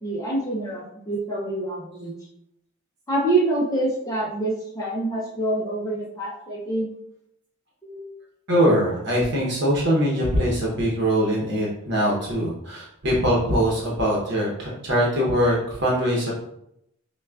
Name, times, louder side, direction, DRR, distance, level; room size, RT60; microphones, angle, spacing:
voice 1, 0.0-2.2 3.1-6.9 7.8-8.2, right 2 dB, 15° left, -5 dB, 0.6 m, -26 dB
voice 2, 8.5-16.3, equal, 55° right, -4 dB, 0.9 m, -22 dB
5.8 x 2.3 x 2.4 m, 0.78 s
head